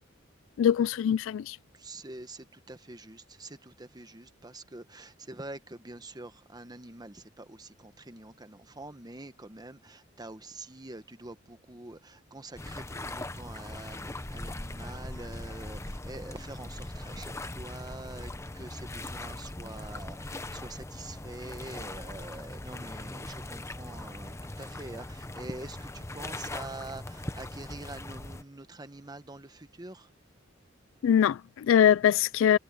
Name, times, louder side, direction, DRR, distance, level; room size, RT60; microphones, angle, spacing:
voice 1, 0.6-1.6 31.0-32.6, left 9 dB, 75° left, 0.3 m, -23 dB
voice 2, 1.7-30.1, right 2 dB, 20° right, 1.1 m, -45 dB
sound 1, 12.6-28.4, left 1 dB, 15° left, 0.9 m, -40 dB
head